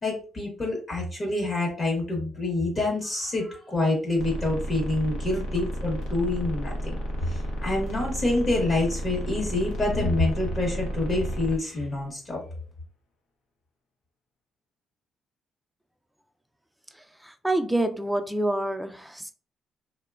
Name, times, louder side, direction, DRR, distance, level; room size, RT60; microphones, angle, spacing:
voice 1, 0.0-7.0 7.3-12.4, left 2 dB, 35° left, 0.9 m, -27 dB
sound 1, 4.2-11.6, right 1 dB, 85° left, 0.6 m, -32 dB
voice 2, 17.2-19.3, right 1 dB, 5° right, 0.3 m, -27 dB
2.9 x 2.1 x 2.3 m
cardioid pair, 90°, 0 cm